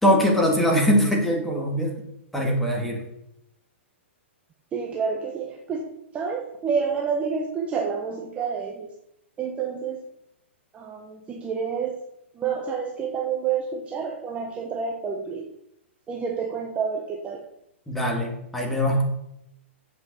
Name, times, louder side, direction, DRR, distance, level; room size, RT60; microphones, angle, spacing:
voice 1, 0.0-1.9 2.3-3.0 17.9-19.0, equal, 5° left, -1 dB, 2.2 m, -22 dB
voice 2, 4.7-8.9 9.4-10.0 10.7-12.0 12.4-15.5 16.1-17.4, right 6 dB, 20° right, 1 dB, 0.9 m, -29 dB
7.9 x 5.3 x 6.8 m, 0.81 s
hypercardioid pair, 140°, 7 cm